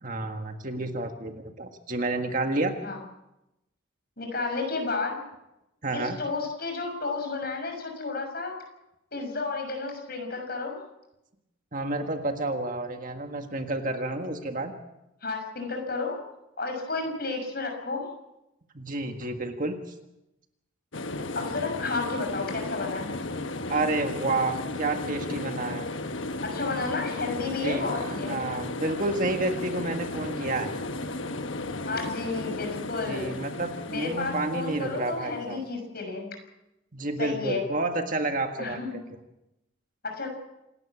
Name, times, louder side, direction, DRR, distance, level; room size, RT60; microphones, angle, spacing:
voice 1, 0.0-2.7 5.8-6.2 11.7-14.7 18.7-19.8 23.7-25.9 27.6-30.7 33.1-35.6 36.9-38.8, right 2 dB, 40° right, 5 dB, 1.7 m, -30 dB
voice 2, 4.2-5.2 5.9-8.6 9.1-10.8 15.2-16.2 16.6-18.1 21.3-23.1 26.4-28.3 31.8-33.3 33.9-36.3 37.2-37.6 38.6-39.0 40.2-40.3, left 3 dB, 50° left, 3 dB, 6.4 m, -32 dB
sound 1, 20.9-35.6, left 2 dB, 70° left, 1.3 m, -34 dB
27.5 x 12.0 x 8.6 m, 0.91 s
head